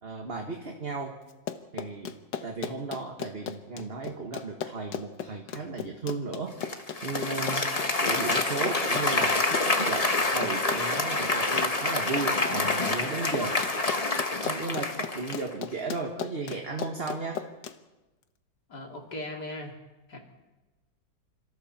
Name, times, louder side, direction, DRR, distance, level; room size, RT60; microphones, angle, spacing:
voice 1, 0.0-1.2 1.7-6.6 7.0-7.7 8.0-13.6 14.4-17.4, right 4 dB, 35° right, 2 dB, 1.7 m, -35 dB
Run, 1.3-17.8, left 8 dB, 90° left, 1.7 m, -37 dB
Applause, 6.6-15.5, left 2 dB, 25° left, 1.3 m, -27 dB
voice 2, 18.7-19.8 20.1-20.2, left 1 dB, 65° left, 1 dB, 3.7 m, -38 dB
26.5 x 26.0 x 4.3 m, 1.1 s
omnidirectional pair, 1.9 m